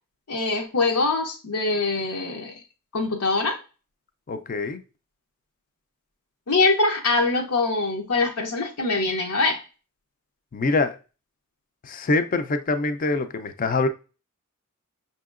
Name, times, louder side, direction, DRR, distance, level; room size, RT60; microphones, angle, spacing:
voice 1, 0.3-2.5 2.9-3.6 6.5-9.6, left 3 dB, 90° left, 0.8 m, -23 dB
voice 2, 4.3-4.8 10.5-11.0 11.8-13.9, left 3 dB, 40° left, 0.4 m, -24 dB
6.0 x 2.8 x 2.4 m
head